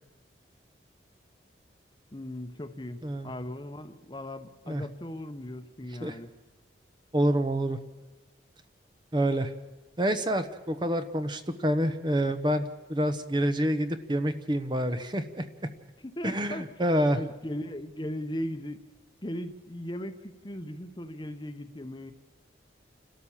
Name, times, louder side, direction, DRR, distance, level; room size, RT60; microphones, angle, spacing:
voice 1, 2.1-6.3 16.0-16.7 17.1-18.8 19.2-22.1, left 1 dB, 25° left, 9 dB, 1.0 m, -38 dB
voice 2, 7.1-7.8 9.1-9.5 10.0-15.5 16.2-17.2, right 1 dB, 25° right, 9 dB, 0.9 m, -27 dB
29.5 x 13.0 x 7.3 m, 1.2 s
head